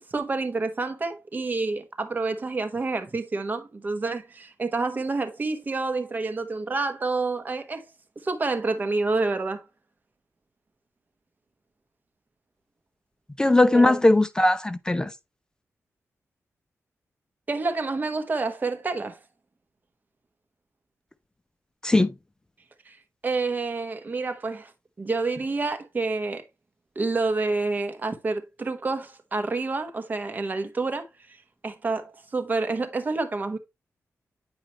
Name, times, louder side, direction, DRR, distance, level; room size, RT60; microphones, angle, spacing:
voice 1, 0.1-7.8 8.2-9.7 13.7-14.0 17.5-19.2 22.9-23.0 23.2-24.7 25.0-26.4 26.9-31.4 31.6-33.6, right 3 dB, 35° right, 1.1 m, -28 dB
voice 2, 13.4-15.1 21.8-22.1, left 2 dB, 15° left, 0.4 m, -19 dB
9.0 x 4.9 x 3.0 m
wide cardioid pair, 120°, 6 cm